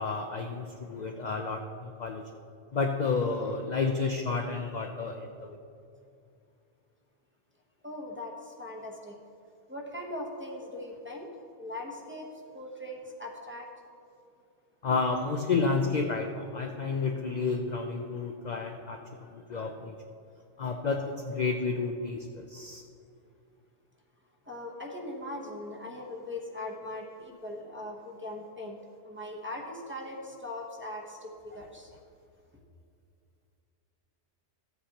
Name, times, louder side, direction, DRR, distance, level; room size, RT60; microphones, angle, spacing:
voice 1, 0.0-2.2 2.7-5.6 14.8-19.0 19.3-19.9 20.6-22.8, left 4 dB, 50° left, 3 dB, 0.6 m, -31 dB
voice 2, 7.8-9.2 9.7-11.3 11.6-13.7 24.5-28.8 29.1-31.9, left 1 dB, 10° right, -2 dB, 0.9 m, -40 dB
14.5 x 8.2 x 2.9 m, 2.4 s
omnidirectional pair, 1.2 m